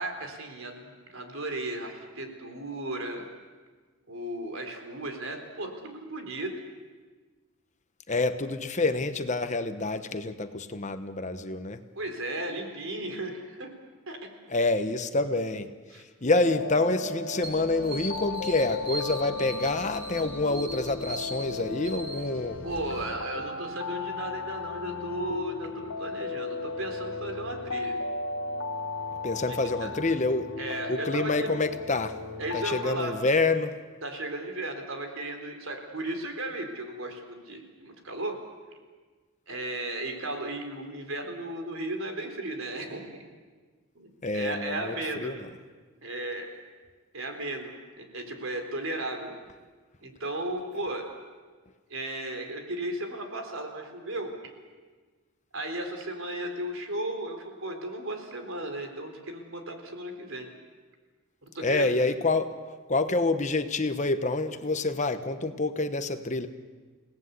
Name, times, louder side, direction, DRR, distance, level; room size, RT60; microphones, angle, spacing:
voice 1, 0.0-3.3 4.1-6.6 12.0-13.7 14.1-14.3 15.9-16.0 22.6-28.0 29.8-29.9 30.6-31.5 32.4-33.1 34.0-38.4 39.5-43.0 44.0-45.4 46.0-46.6 47.1-49.4 50.0-51.1 51.9-54.3 55.5-60.5 61.4-61.9, right 1 dB, 70° right, 4 dB, 3.9 m, -35 dB
voice 2, 8.1-11.8 14.5-22.6 23.3-23.4 29.2-30.5 30.9-32.2 32.5-33.8 44.2-45.5 61.6-62.6 62.9-66.5, left 2 dB, 35° left, 9 dB, 1.1 m, -27 dB
sound 1, 16.3-32.8, left 3 dB, 75° left, 1.4 m, -36 dB
sound 2, 17.4-22.8, right 1 dB, 25° right, 4.1 m, -40 dB
29.0 x 18.0 x 8.3 m, 1.4 s
head